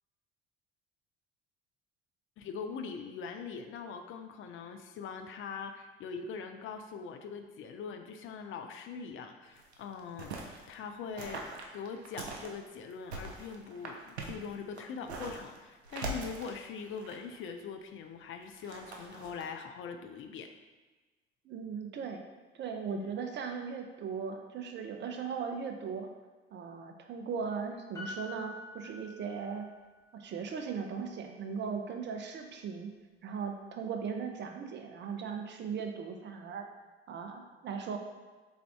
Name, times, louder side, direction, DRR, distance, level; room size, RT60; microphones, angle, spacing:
voice 1, 2.4-10.3 10.7-20.5 22.9-23.1, left 6 dB, 40° left, 6 dB, 0.5 m, -42 dB
sound 1, 9.5-10.6 11.2-12.5 12.9-15.6 15.8-17.4 18.4-19.4, right 2 dB, 85° right, 0.5 m, -42 dB
voice 2, 21.4-22.2 22.5-26.1 26.5-29.7 30.1-32.9 33.2-36.7 37.1-38.0, right 6 dB, 35° right, 4 dB, 0.6 m, -38 dB
Piano, 27.9-29.7 30.0-30.1, left 2 dB, 10° left, 1.3 m, -45 dB
3.5 x 3.5 x 3.4 m, 1.3 s
figure-of-eight pair, 55°, 32 cm